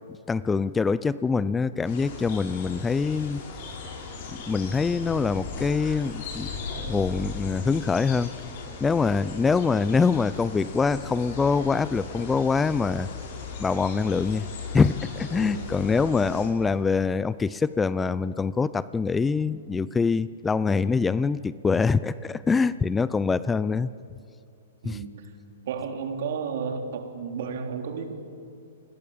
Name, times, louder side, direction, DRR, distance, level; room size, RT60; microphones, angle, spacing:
voice 1, 0.3-3.5 4.5-6.5 6.9-8.3 8.8-13.1 13.6-14.5 14.7-23.9 24.8-25.0, left 5 dB, 10° left, 17 dB, 0.6 m, -24 dB
sound 1, 1.8-16.5, left 4 dB, 50° left, 7.9 m, -37 dB
voice 2, 15.3-15.7 24.8-25.3 25.7-28.1, right 6 dB, 60° right, 5 dB, 3.6 m, -32 dB
29.0 x 20.5 x 8.8 m, 2.4 s
hypercardioid pair, 130°, 0 cm